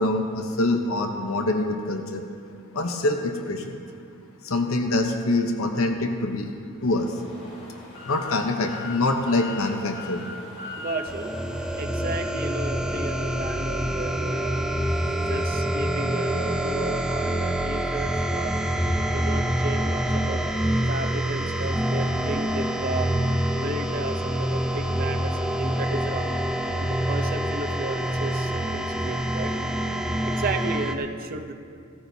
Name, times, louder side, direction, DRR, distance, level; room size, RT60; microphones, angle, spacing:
voice 1, 0.0-2.3 2.7-3.8 4.4-6.5 6.8-7.2 8.0-10.2, left 2 dB, 85° left, 4 dB, 0.9 m, -25 dB
sound 1, 6.8-12.1, left 3 dB, 65° left, 2.9 m, -40 dB
voice 2, 10.8-11.3 11.8-14.7 15.1-18.5 19.0-20.4 20.9-23.1 23.6-26.3 26.8-29.5 30.2-31.5, right 3 dB, 45° right, 5 dB, 0.7 m, -33 dB
sound 2, 11.1-30.9, right 1 dB, 5° right, 0.5 m, -26 dB
16.5 x 13.5 x 2.7 m, 2.4 s
head